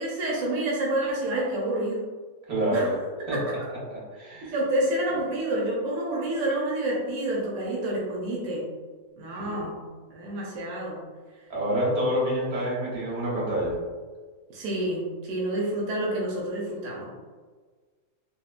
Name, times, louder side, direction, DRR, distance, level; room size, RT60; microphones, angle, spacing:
voice 1, 0.0-2.0 2.6-2.9 3.3-3.6 4.4-8.7 9.2-9.8 10.1-11.0 14.5-17.0, right 1 dB, 70° right, -4 dB, 1.0 m, -28 dB
voice 2, 2.5-3.0 3.3-4.6 9.4-9.7 11.5-13.8, equal, 90° right, -5 dB, 1.6 m, -28 dB
3.5 x 2.5 x 2.4 m, 1.5 s
omnidirectional pair, 1.5 m